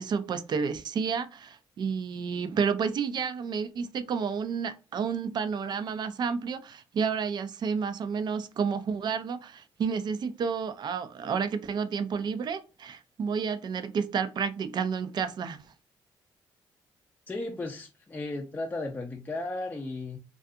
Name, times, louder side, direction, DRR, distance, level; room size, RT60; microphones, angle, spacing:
voice 1, 0.0-15.6, right 6 dB, 55° right, 0.4 m, -30 dB
voice 2, 17.3-20.2, left 2 dB, 20° left, 0.5 m, -35 dB
2.3 x 2.3 x 2.7 m
supercardioid pair, 70°, 9 cm